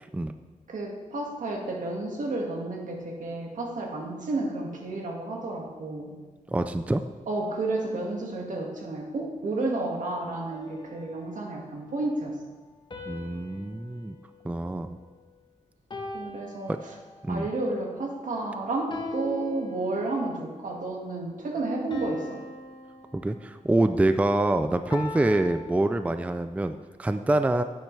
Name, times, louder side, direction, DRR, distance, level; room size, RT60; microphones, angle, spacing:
voice 1, 0.7-6.2 7.3-12.3 16.1-16.7 17.3-22.4, right 2 dB, 75° right, 0 dB, 2.0 m, -31 dB
voice 2, 6.5-7.0 13.1-14.2 14.4-15.0 16.7-16.8 17.2-17.5 23.1-27.6, right 2 dB, 10° right, 9 dB, 0.4 m, -26 dB
sound 1, 10.5-11.7 12.9-15.3 15.9-17.4 18.9-20.4 21.9-23.8 24.9-26.5, left 2 dB, 35° left, 1.3 m, -41 dB
16.0 x 9.1 x 3.4 m, 1.3 s
wide cardioid pair, 120°, 13 cm